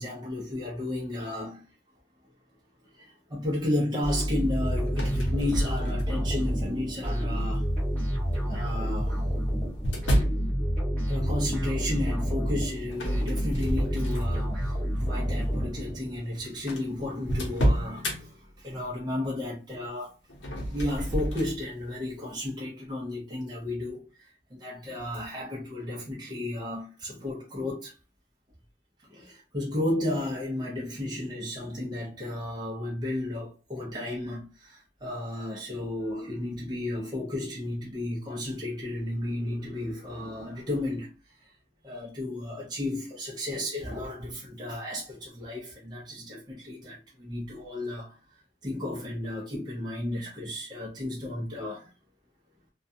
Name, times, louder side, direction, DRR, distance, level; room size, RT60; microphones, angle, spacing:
voice 1, 0.0-1.6 2.9-7.7 8.5-9.2 11.1-20.1 20.7-27.9 29.1-41.1 41.8-48.1 48.6-51.9, left 1 dB, 20° right, 0.6 m, -33 dB
sound 1, 4.0-16.2, equal, 10° left, 1.0 m, -29 dB
sound 2, 4.9-6.3 7.0-7.4 8.5-10.4 12.9-14.5 14.9-15.2 16.0-16.1 16.2-16.3 16.7-18.2 20.3-21.6, equal, 80° left, 0.9 m, -30 dB
2.3 x 2.2 x 2.7 m
head